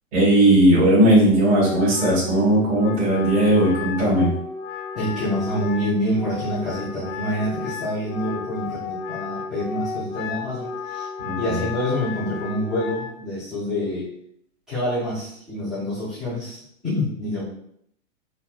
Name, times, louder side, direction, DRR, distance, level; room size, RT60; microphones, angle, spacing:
voice 1, 0.1-4.3 11.2-11.3, right 1 dB, 45° right, -8 dB, 1.5 m, -17 dB
Wind instrument woodwind instrument, 1.4-13.1, left 5 dB, 65° left, 0.5 m, -33 dB
voice 2, 4.9-11.1 11.3-14.1 14.7-17.4, left 1 dB, ahead, -14 dB, 0.3 m, -27 dB
4.1 x 2.0 x 2.4 m, 0.68 s
hypercardioid pair, 140°, 42 cm